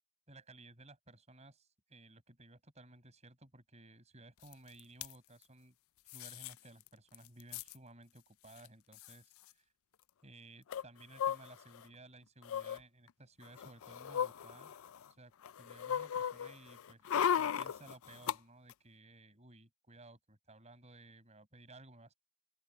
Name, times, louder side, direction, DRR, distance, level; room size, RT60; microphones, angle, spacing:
voice 1, 0.3-5.7 6.1-9.6 10.2-14.7 15.2-15.3 15.6-17.0 17.4-22.1, right 2 dB, 30° right, 6.9 m, -57 dB
sound 1, 4.5-4.6 4.8-5.1 6.1-6.5 6.9-7.0 7.1-7.7 8.6-8.7 8.9-9.1 10.7-11.8 12.4-12.8 13.4-15.1 15.4-18.4 18.7-18.8, left 8 dB, 70° left, 0.4 m, -36 dB
open air
head